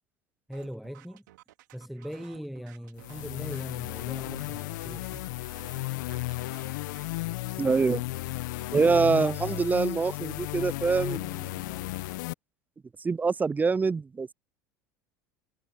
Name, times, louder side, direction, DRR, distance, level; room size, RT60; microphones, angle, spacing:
voice 1, 0.5-1.2 1.7-5.3, equal, ahead, 1.0 m, -40 dB
sound 1, 0.5-7.4, right 16 dB, 75° right, 4.2 m, -55 dB
sound 2, 3.0-12.3, left 20 dB, 70° left, 0.9 m, -34 dB
voice 2, 7.6-8.0 8.7-11.9 13.0-14.3, right 4 dB, 15° right, 0.3 m, -25 dB
hypercardioid pair, 75°, 10 cm